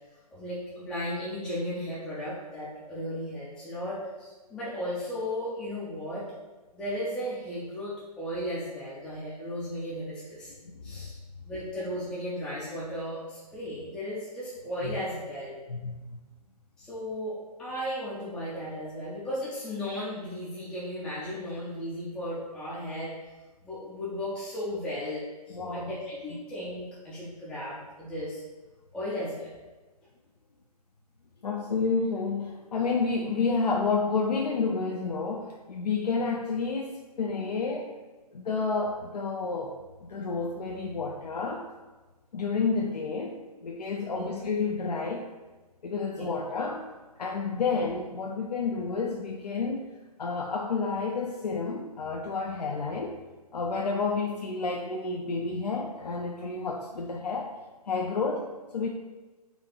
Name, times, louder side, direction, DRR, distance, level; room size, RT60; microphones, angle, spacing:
voice 1, 0.3-6.3 6.7-10.5 10.8-11.2 11.4-15.5 16.8-23.1 23.6-28.4 28.9-29.5 44.0-44.3 46.2-46.3 47.4-47.6, equal, 5° left, -10 dB, 0.3 m, -35 dB
voice 2, 15.7-16.2 25.5-26.0 31.4-37.9 38.3-41.7 42.3-45.3 45.8-46.9 47.2-49.9 50.2-53.2 53.5-57.5 57.9-58.9, left 4 dB, 85° left, -1 dB, 0.4 m, -30 dB
4.0 x 2.3 x 2.9 m, 1.2 s
figure-of-eight pair, 130°, 20 cm